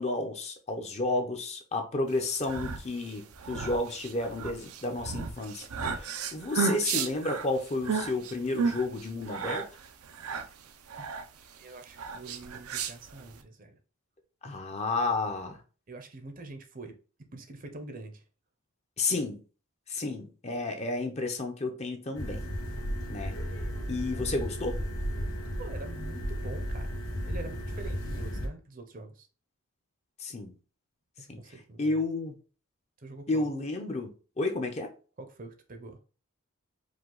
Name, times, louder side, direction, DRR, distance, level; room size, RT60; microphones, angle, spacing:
voice 1, 0.0-9.7 14.4-15.6 19.0-19.4 19.9-22.5 23.1-23.4 23.9-24.8 30.2-30.6 31.3-31.4 31.8-32.3 33.3-34.9, left 2 dB, 30° left, 0.6 m, -31 dB
sound 1, 2.2-13.4, right 5 dB, 85° right, 0.6 m, -34 dB
voice 2, 11.6-13.8 15.9-17.0 17.3-18.2 25.6-27.0 27.2-29.3 31.2-32.0 33.0-33.5 35.2-36.0, right 2 dB, 40° right, 0.6 m, -45 dB
sound 2, 22.1-28.5, equal, 75° left, 1.4 m, -34 dB
4.9 x 2.3 x 3.8 m
head